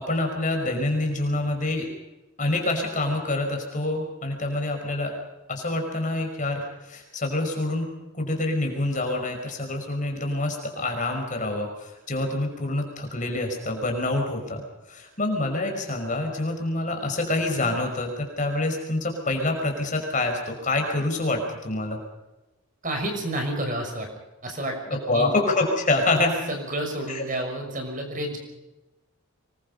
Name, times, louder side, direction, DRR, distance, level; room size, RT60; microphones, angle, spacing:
voice 1, 0.0-1.9 2.4-5.1 5.5-7.8 8.1-14.6 14.9-22.0 25.1-26.3 27.1-27.3, left 2 dB, 35° left, 3 dB, 5.6 m, -26 dB
voice 2, 22.8-24.1 24.4-25.3 26.5-28.4, right 1 dB, 35° right, 3 dB, 6.2 m, -30 dB
25.5 x 23.0 x 5.5 m, 1.0 s
head